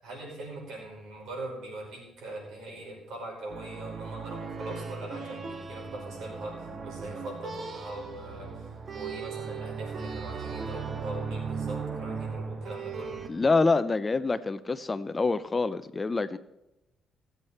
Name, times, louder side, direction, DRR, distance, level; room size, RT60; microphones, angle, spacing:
voice 1, 0.0-8.7 8.9-13.2, right 2 dB, 75° right, 5.5 m, -41 dB
sound 1, 3.5-13.3, right 5 dB, 45° right, 1.2 m, -37 dB
voice 2, 13.3-16.4, left 3 dB, 25° left, 0.6 m, -26 dB
17.0 x 8.1 x 4.3 m
cardioid pair, 90°, 0 cm